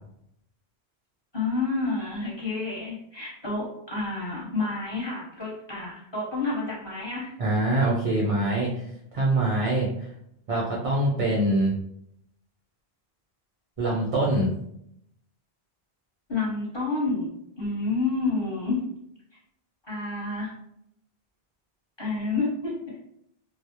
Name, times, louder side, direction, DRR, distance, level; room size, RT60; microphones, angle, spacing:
voice 1, 1.3-7.4 16.3-17.3 17.6-18.8 19.9-20.5 22.0-22.8, left 3 dB, 25° left, -7 dB, 0.9 m, -29 dB
voice 2, 7.4-8.8 9.1-10.1 10.5-11.8 13.8-14.5, right 1 dB, 55° right, -4 dB, 0.4 m, -24 dB
2.2 x 2.0 x 2.7 m, 0.74 s
omnidirectional pair, 1.1 m